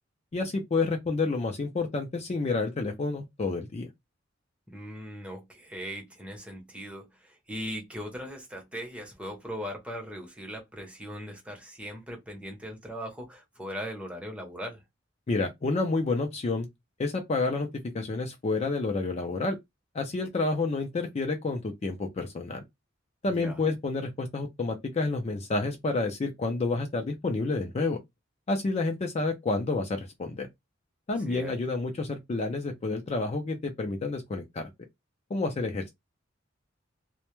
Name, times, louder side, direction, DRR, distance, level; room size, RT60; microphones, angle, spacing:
voice 1, 0.3-3.9 15.3-16.7 17.0-17.7 17.9-19.6 19.9-22.6 23.2-28.0 28.5-30.5 31.1-34.7 35.3-35.9, left 3 dB, 35° left, 0.4 m, -29 dB
voice 2, 4.7-14.8 23.3-23.6 31.3-31.5, equal, 5° right, 0.7 m, -39 dB
2.1 x 2.1 x 2.9 m
head